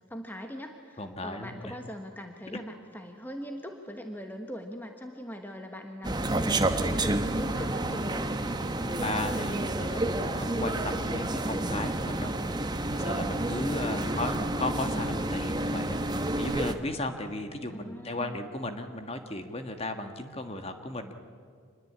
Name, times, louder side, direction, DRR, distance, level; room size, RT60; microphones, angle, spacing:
voice 1, 0.1-8.3 13.8-14.2 17.7-18.4, equal, 10° left, 4 dB, 1.2 m, -41 dB
voice 2, 1.0-1.8 2.5-2.6 9.0-12.3 12.9-21.1, left 2 dB, 30° left, 7 dB, 1.5 m, -35 dB
sound 1, 6.0-16.7, right 1 dB, 20° right, 1.0 m, -29 dB
25.5 x 21.0 x 8.7 m, 2.2 s
head